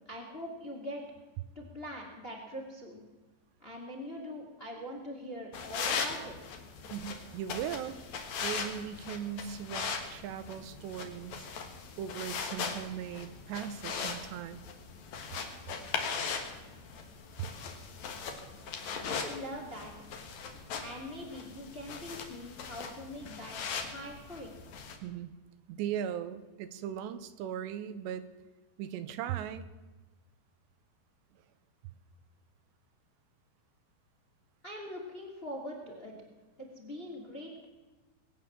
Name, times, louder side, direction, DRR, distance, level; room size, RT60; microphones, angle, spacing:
voice 1, 0.1-1.0 1.5-3.0 3.6-6.3 19.0-19.9 20.8-23.5 23.8-24.5 34.6-36.2 36.6-37.6, equal, 20° left, 0 dB, 1.7 m, -42 dB
sound 1, 5.5-25.0, left 5 dB, 55° left, 2.3 m, -39 dB
voice 2, 6.9-8.0 8.4-11.5 12.0-14.6 17.4-17.5 25.0-25.3 25.7-28.3 28.8-29.6 31.3-31.4, right 10 dB, 85° right, 12 dB, 3.0 m, -38 dB
21.0 x 9.1 x 7.3 m, 1.2 s
omnidirectional pair, 5.0 m